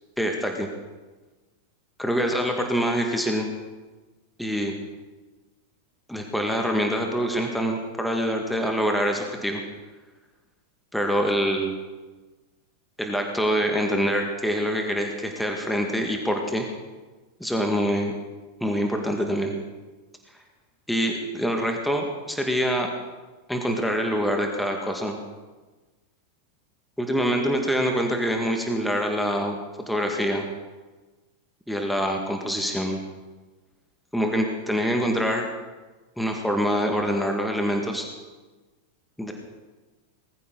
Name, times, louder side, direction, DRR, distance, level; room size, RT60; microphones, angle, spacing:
voice 1, 0.2-0.7 2.0-3.5 4.4-4.7 6.1-9.6 10.9-11.8 13.0-16.7 17.4-18.1 18.6-19.5 20.9-22.9 23.5-25.2 27.0-29.6 29.9-30.5 31.7-33.0 34.1-35.5 36.2-38.1 39.2-39.3, equal, ahead, 2 dB, 2.1 m, -25 dB
20.0 x 14.5 x 4.1 m, 1.2 s
figure-of-eight pair, 90°, 0 cm